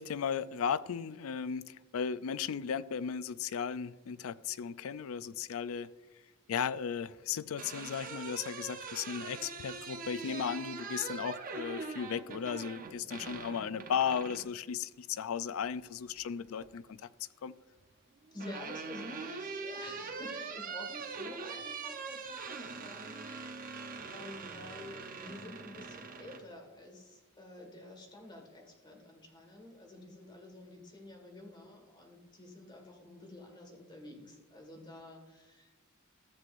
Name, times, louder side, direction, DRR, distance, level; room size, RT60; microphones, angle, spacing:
voice 1, 0.0-5.9 6.5-17.1 17.4-17.5, left 7 dB, 70° left, 0.4 m, -36 dB
sound 1, 7.3-14.5 16.0-16.7 17.9-26.4, right 4 dB, 40° right, 0.8 m, -43 dB
voice 2, 18.3-23.7 24.1-35.8, left 1 dB, 20° left, 1.7 m, -49 dB
14.0 x 7.8 x 2.6 m
head